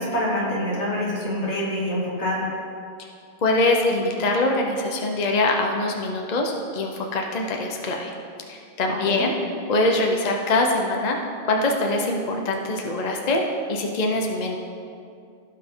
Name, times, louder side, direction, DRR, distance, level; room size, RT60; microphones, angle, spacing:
voice 1, 0.0-2.5 8.9-9.3, left 1 dB, 85° left, -7 dB, 2.7 m, -26 dB
voice 2, 3.4-8.1 8.5-9.3 9.7-13.4 13.7-14.6, left 2 dB, 40° left, 1 dB, 0.9 m, -23 dB
16.0 x 5.6 x 3.7 m, 2.4 s
omnidirectional pair, 1.1 m